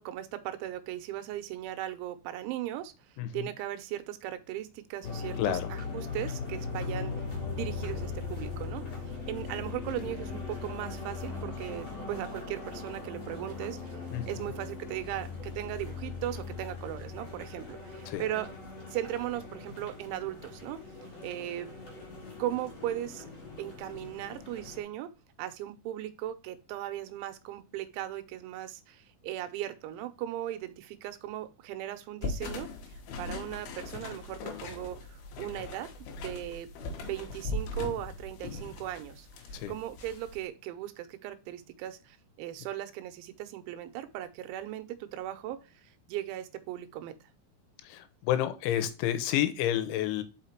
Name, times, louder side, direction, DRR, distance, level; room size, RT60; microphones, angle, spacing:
voice 1, 0.0-2.9 3.3-7.2 7.5-14.0 14.3-20.8 21.2-21.7 22.4-23.3 23.6-25.1 25.4-32.7 33.2-35.9 36.2-36.7 37.0-39.3 39.7-47.2, right 13 dB, 90° right, 10 dB, 3.1 m, -38 dB
voice 2, 3.2-3.5 5.4-5.7 14.1-14.4 18.1-18.2 39.5-39.7 47.8-50.2, left 12 dB, 85° left, 10 dB, 3.2 m, -30 dB
sound 1, 5.0-24.8, left 4 dB, 45° left, 2.6 m, -39 dB
sound 2, 32.2-40.4, left 3 dB, 65° left, 2.8 m, -40 dB
5.7 x 5.7 x 4.4 m, 0.31 s
omnidirectional pair, 5.4 m